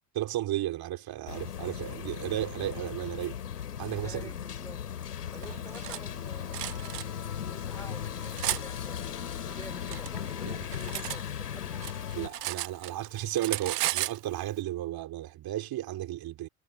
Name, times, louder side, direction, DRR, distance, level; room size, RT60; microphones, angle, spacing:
voice 1, 0.1-3.4 3.8-4.3 10.4-10.6 12.1-16.5, right 13 dB, 50° right, 3.1 m, -34 dB
sound 1, 1.3-12.3, left 9 dB, 90° left, 2.5 m, -37 dB
voice 2, 4.0-4.8 5.3-11.8, left 1 dB, 5° left, 3.9 m, -50 dB
sound 2, 5.3-13.9, left 9 dB, 40° left, 4.8 m, -50 dB
Cutlery silverware, 5.4-6.0 6.5-7.0 7.7-8.6 9.5-11.2 11.5-13.1 13.3-14.2, right 15 dB, 80° right, 1.3 m, -34 dB
hypercardioid pair, 70°, 46 cm